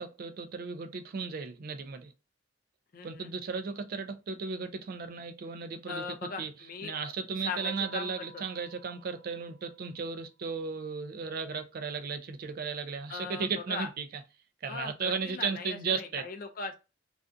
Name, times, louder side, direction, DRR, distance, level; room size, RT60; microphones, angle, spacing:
voice 1, 0.0-2.1 3.0-6.0 6.4-6.5 6.8-14.1 14.6-16.2, right 5 dB, 50° right, 0.3 m, -35 dB
voice 2, 2.9-3.3 5.9-7.1 7.4-8.3 13.1-13.9 14.7-16.7, left 4 dB, 45° left, 0.4 m, -39 dB
Keyboard (musical), 7.6-10.1, right 1 dB, 90° left, 0.7 m, -55 dB
2.4 x 2.2 x 2.4 m
head